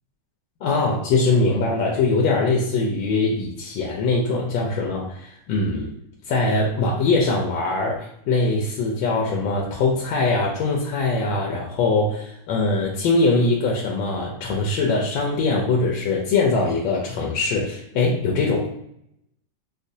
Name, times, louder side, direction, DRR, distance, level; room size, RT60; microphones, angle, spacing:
voice 1, 0.6-5.9 6.3-18.7, left 3 dB, 90° left, -1 dB, 1.4 m, -22 dB
4.9 x 2.1 x 2.6 m, 0.74 s
omnidirectional pair, 2.1 m